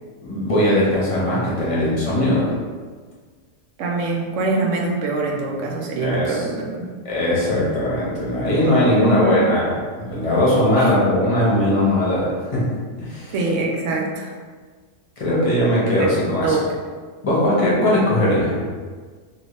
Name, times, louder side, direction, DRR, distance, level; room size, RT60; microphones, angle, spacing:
voice 1, 0.2-2.6 6.0-6.4 7.0-12.6 13.0-13.3 15.2-16.6 17.2-18.6, left 1 dB, 30° left, -7 dB, 0.8 m, -19 dB
voice 2, 3.8-6.9 8.9-9.5 10.7-10.9 13.3-14.4 16.0-16.1 16.4-16.6, right 3 dB, 75° right, 0 dB, 0.9 m, -23 dB
2.9 x 2.7 x 3.0 m, 1.5 s
omnidirectional pair, 1.3 m